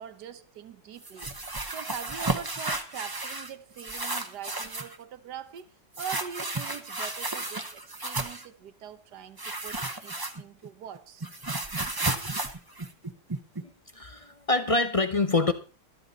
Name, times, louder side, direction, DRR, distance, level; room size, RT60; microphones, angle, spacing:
voice 1, 0.0-5.7 6.0-11.3, right 8 dB, 85° right, 1.6 m, -43 dB
sound 1, 1.0-3.5 3.8-5.0 5.9-8.5 9.4-10.7 10.9-13.6, right 2 dB, 15° right, 1.0 m, -33 dB
voice 2, 13.6-15.5, left 3 dB, 35° left, 0.6 m, -26 dB
13.5 x 13.0 x 4.1 m
omnidirectional pair, 1.7 m